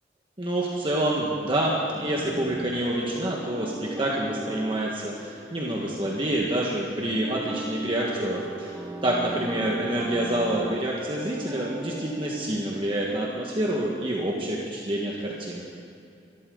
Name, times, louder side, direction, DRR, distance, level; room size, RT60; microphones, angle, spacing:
voice 1, 0.4-8.7 9.0-15.7, right 1 dB, 30° right, -3 dB, 1.7 m, -27 dB
sound 1, 1.9-14.6, right 1 dB, 10° right, 1.6 m, -39 dB
24.5 x 13.5 x 4.0 m, 2.5 s
head